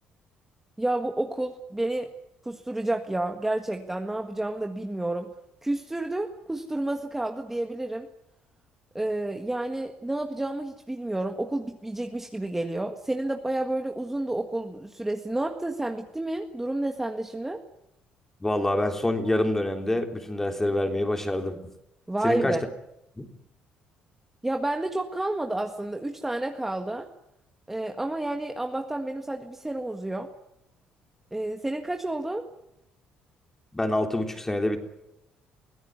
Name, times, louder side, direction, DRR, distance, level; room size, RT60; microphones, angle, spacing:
voice 1, 0.8-2.1 2.4-5.3 5.6-8.1 8.9-17.6 22.1-22.6 24.4-27.1 27.7-30.3 31.3-32.5, right 1 dB, 10° right, 4 dB, 1.7 m, -30 dB
voice 2, 18.4-21.6 22.2-22.6 23.2-23.3 33.7-34.8, left 1 dB, 10° left, 5 dB, 3.6 m, -26 dB
24.5 x 16.5 x 9.6 m, 0.84 s
cardioid pair, 120°, 3 cm